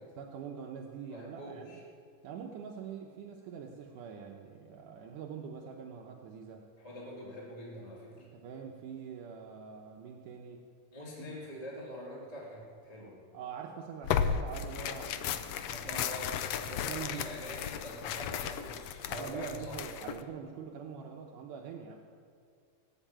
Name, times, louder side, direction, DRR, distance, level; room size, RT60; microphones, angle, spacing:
voice 1, 0.2-1.8 2.2-6.7 8.1-10.6 11.2-11.3 13.3-16.0 16.7-17.3 19.1-22.0, right 7 dB, 80° right, 1 dB, 2.4 m, -44 dB
voice 2, 1.1-1.8 6.8-8.2 10.9-13.2 15.6-19.8, equal, 15° left, -4 dB, 2.0 m, -44 dB
Tearing, 14.0-20.2, left 8 dB, 85° left, 1.4 m, -35 dB
19.0 x 8.3 x 8.8 m, 2.2 s
omnidirectional pair, 3.7 m